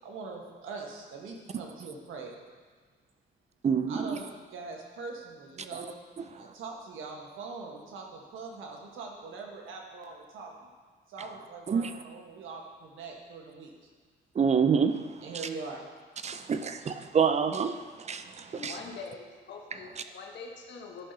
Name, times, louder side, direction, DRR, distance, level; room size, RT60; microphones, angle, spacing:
voice 1, 0.0-2.4 3.9-6.0 6.3-10.7 11.1-13.9 15.2-15.8, right 4 dB, 85° right, 1 dB, 1.3 m, -42 dB
voice 2, 3.6-4.2 5.7-5.8 6.2-6.3 11.7-11.9 14.3-15.2 16.2-18.8, right 6 dB, 35° right, 9 dB, 0.5 m, -27 dB
voice 3, 18.5-21.1, left 4 dB, 65° left, 1 dB, 1.2 m, -44 dB
11.0 x 5.9 x 2.8 m, 1.5 s
cardioid pair, 90°, 20 cm